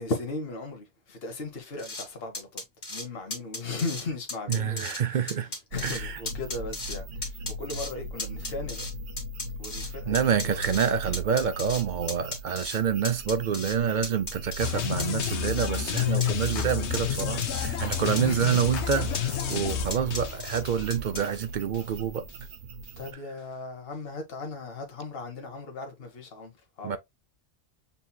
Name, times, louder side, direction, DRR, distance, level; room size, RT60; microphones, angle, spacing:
voice 1, 0.0-2.6 2.9-8.8 9.6-10.8 18.2-18.7 19.5-19.9 21.1-21.2 23.0-26.5 26.8-27.0, left 3 dB, 60° left, 1.2 m, -37 dB
sound 1, 1.8-2.0 2.3-3.0 3.3-4.0 4.3-5.0 5.3-6.0 6.3-7.0 7.2-7.9 8.2-9.9 10.1-11.8 12.1-12.8 13.0-13.8 14.0-14.7 15.0-15.7 16.0-16.7 16.9-17.7 17.9-18.6 18.9-19.6 19.9-20.6 20.9-21.2, left 2 dB, 40° left, 1.7 m, -35 dB
voice 2, 4.5-5.5 5.8-6.2 10.1-22.3 26.8-27.0, right 7 dB, 55° right, 0.6 m, -27 dB
sound 2, 5.7-23.1, right 2 dB, 75° right, 1.0 m, -40 dB
sound 3, 14.6-21.4 21.7-21.9, left 9 dB, 85° left, 1.0 m, -30 dB
6.9 x 2.8 x 2.2 m
omnidirectional pair, 1.1 m